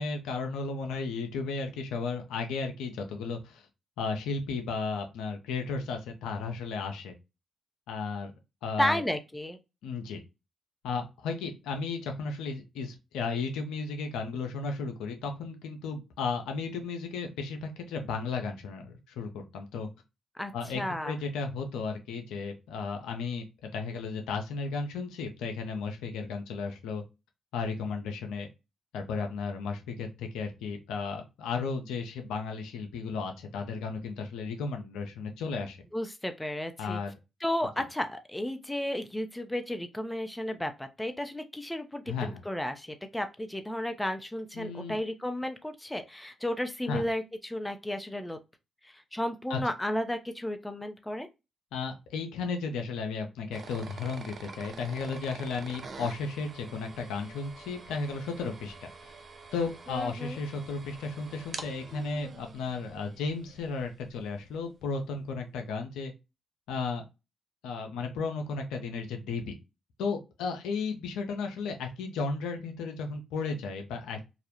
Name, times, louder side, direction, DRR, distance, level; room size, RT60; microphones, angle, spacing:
voice 1, 0.0-3.6 4.0-7.1 7.9-8.3 8.6-9.0 9.8-10.2 10.8-19.9 20.5-27.0 27.5-28.5 28.9-35.8 36.8-37.1 42.1-42.4 44.5-45.0 46.9-47.0 49.5-49.6 51.7-58.7 59.0-59.1 59.5-66.1 66.7-67.0 67.6-69.6 70.0-74.2, left 4 dB, 80° left, 0.5 m, -34 dB
voice 2, 8.8-9.6 20.4-21.2 35.9-37.0 37.4-48.4 48.9-51.3 59.9-60.4, left 1 dB, 10° left, 0.5 m, -33 dB
sound 1, 53.5-64.3, right 4 dB, 55° right, 0.4 m, -47 dB
2.3 x 2.0 x 2.9 m
hypercardioid pair, 45°, 0 cm